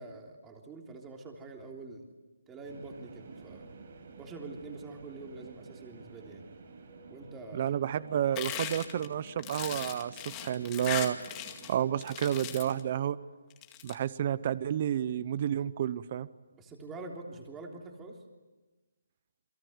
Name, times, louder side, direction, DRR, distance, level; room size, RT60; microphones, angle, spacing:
voice 1, 0.0-2.0 2.5-3.7 4.2-6.4 7.1-7.8 16.5-18.2, right 3 dB, 10° right, 2 dB, 3.4 m, -45 dB
sound 1, 2.6-12.9, right 4 dB, 50° right, 5.8 m, -51 dB
voice 2, 7.5-11.2 11.7-13.2 13.8-16.3, right 10 dB, 35° right, 17 dB, 0.8 m, -30 dB
sound 2, 8.4-11.7 12.0-12.8 13.5-13.9, left 11 dB, 20° left, 2.2 m, -39 dB
29.0 x 22.5 x 8.1 m, 1.2 s
hypercardioid pair, 165°, 0 cm